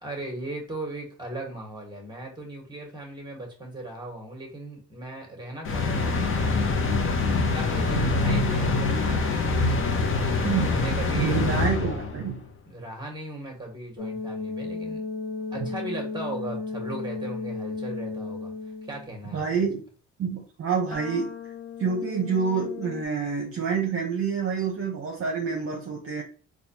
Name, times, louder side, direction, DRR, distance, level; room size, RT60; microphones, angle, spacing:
voice 1, 0.0-6.9 7.5-11.4 12.6-15.0 15.5-18.5 18.8-19.6, right 1 dB, 15° right, 1 dB, 1.5 m, -38 dB
sound 1, 5.6-12.3, left 3 dB, 45° left, 0.8 m, -25 dB
voice 2, 11.1-12.4 15.6-15.7 19.3-19.8 20.2-21.3 21.8-26.2, right 5 dB, 50° right, 0 dB, 0.8 m, -27 dB
sound 2, 14.0-19.2 20.9-23.0, left 4 dB, 70° left, 1.0 m, -35 dB
4.0 x 2.4 x 2.9 m, 0.37 s
cardioid pair, 90°, 30 cm